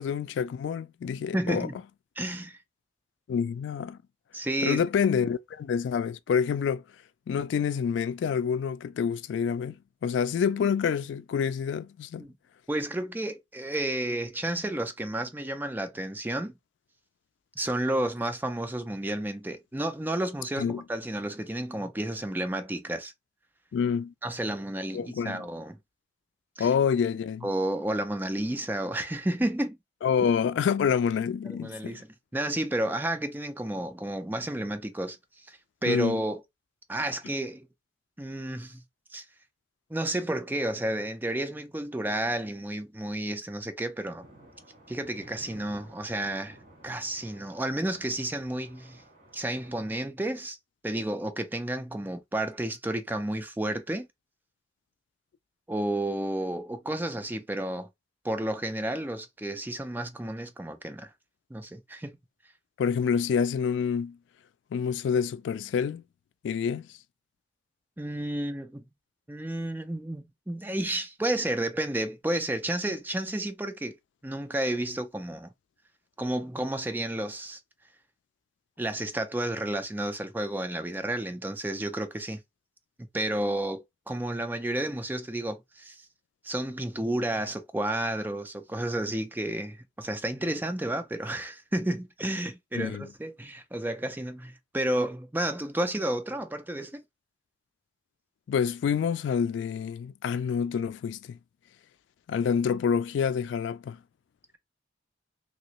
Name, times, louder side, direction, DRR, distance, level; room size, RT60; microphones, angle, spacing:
voice 1, 0.0-1.7 3.3-4.0 4.6-6.8 7.3-12.3 20.6-20.8 23.7-24.1 24.9-25.4 26.6-27.5 30.0-32.0 35.9-36.2 62.8-64.2 64.7-66.0 66.4-66.9 92.7-93.1 98.5-101.4 102.3-104.0, left 7 dB, 80° left, 0.3 m, -27 dB
voice 2, 1.3-1.8 2.2-2.6 4.3-4.8 12.2-12.4 12.7-16.5 17.6-23.1 24.2-25.8 26.6-26.7 27.4-29.8 31.5-32.1 32.3-35.2 35.4-36.4 36.9-37.7 38.2-38.8 39.1-39.3 39.9-44.3 44.9-46.6 46.8-49.0 49.3-50.6 50.8-54.1 55.7-57.9 58.2-61.1 61.5-62.2 68.0-68.8 69.3-74.0 74.2-75.5 76.2-77.6 78.8-82.4 83.0-86.0 86.4-97.0, right 1 dB, 10° right, 0.5 m, -31 dB
sound 1, 44.2-49.9, right 1 dB, 45° right, 1.9 m, -54 dB
3.0 x 2.9 x 2.9 m
head